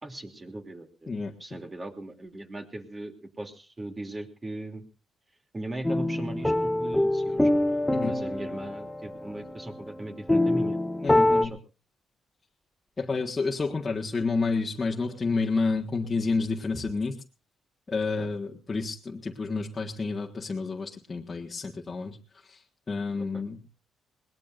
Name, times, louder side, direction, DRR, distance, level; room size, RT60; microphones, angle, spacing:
voice 1, 0.0-1.1 1.4-4.8 5.5-7.5 8.0-11.6 18.2-18.3 23.3-23.4, right 1 dB, 25° right, 5 dB, 3.0 m, -39 dB
sound 1, 5.8-11.5, left 1 dB, 10° left, 1.1 m, -25 dB
voice 2, 11.0-11.5 13.0-17.2 17.9-22.2 22.5-22.6 22.9-23.6, left 4 dB, 30° left, -1 dB, 1.7 m, -29 dB
21.5 x 19.5 x 2.6 m, 0.35 s
cardioid pair, 90°, 0 cm